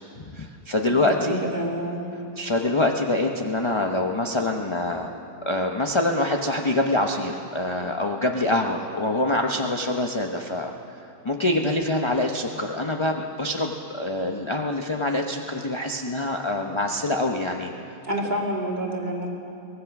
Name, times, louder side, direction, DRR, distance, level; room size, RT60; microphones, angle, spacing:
voice 1, 0.2-1.4 2.4-5.1 5.4-10.7 11.2-17.7, left 2 dB, 25° left, 2 dB, 0.6 m, -25 dB
voice 2, 0.9-2.0 18.0-19.3, right 1 dB, 25° right, -2 dB, 2.6 m, -28 dB
24.0 x 18.5 x 6.0 m, 2.7 s
omnidirectional pair, 1.9 m